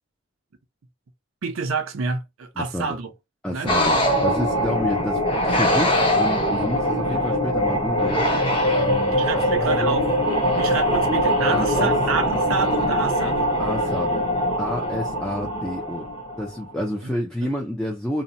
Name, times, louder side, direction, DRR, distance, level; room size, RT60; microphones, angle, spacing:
voice 1, 1.4-3.1 3.5-3.7 9.1-10.1 10.5-13.5 17.0-17.1 17.4-17.5, right 5 dB, 90° right, 0.6 m, -28 dB
voice 2, 2.6-3.0 3.4-8.2 8.7-10.0 11.4-11.9 13.6-14.3 14.6-16.1 16.4-18.2, equal, 5° left, 0.4 m, -29 dB
sound 1, 3.7-16.6, equal, 25° left, 0.8 m, -22 dB
2.7 x 2.1 x 2.5 m
head